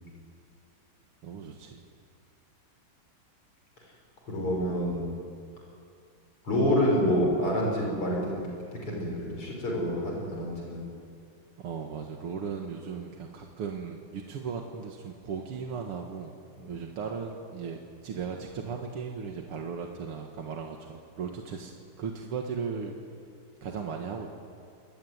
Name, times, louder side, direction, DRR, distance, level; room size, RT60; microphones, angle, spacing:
voice 1, 1.2-1.8 11.6-16.3 16.7-22.9 23.6-24.3, right 6 dB, 85° right, 2 dB, 2.6 m, -37 dB
voice 2, 4.3-5.1 6.4-8.4 8.7-10.8 16.6-16.7, equal, 85° left, -1 dB, 7.1 m, -27 dB
27.5 x 21.5 x 9.6 m, 2.3 s
omnidirectional pair, 2.4 m